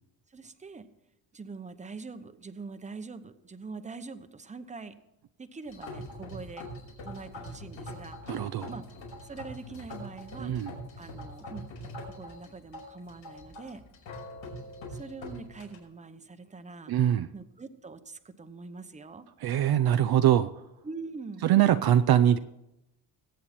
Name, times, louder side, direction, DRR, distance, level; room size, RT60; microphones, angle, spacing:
voice 1, 0.3-0.9 1.3-4.9 5.4-6.7 7.0-8.4 8.7-8.8 9.2-10.5 11.0-11.7 12.0-13.8 14.9-16.9 17.3-19.3 20.8-21.5, right 4 dB, 15° right, 10 dB, 0.9 m, -43 dB
sound 1, 5.7-15.8, left 1 dB, 70° left, 5.9 m, -43 dB
voice 2, 8.3-8.7 10.4-10.7 16.9-17.3 19.4-20.5 21.4-22.4, right 11 dB, 55° right, 10 dB, 0.6 m, -23 dB
22.5 x 8.5 x 4.3 m, 0.89 s
cardioid pair, 120°, 46 cm